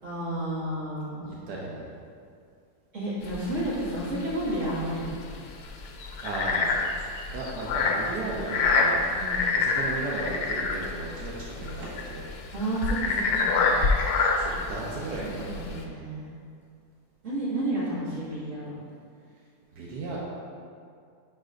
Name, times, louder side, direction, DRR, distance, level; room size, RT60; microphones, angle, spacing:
voice 1, 0.0-1.3 2.9-5.2 9.2-9.5 12.5-13.7 14.8-16.3 17.2-18.7, right 1 dB, 50° right, -9 dB, 2.3 m, -31 dB
voice 2, 1.2-1.9 6.2-6.8 7.3-11.3 11.6-12.2 14.4-15.9 19.8-20.2, right 2 dB, 85° right, -4 dB, 1.4 m, -35 dB
sound 1, 3.2-15.8, left 4 dB, 75° left, 1.1 m, -27 dB
10.0 x 4.8 x 2.5 m, 2.3 s
omnidirectional pair, 1.7 m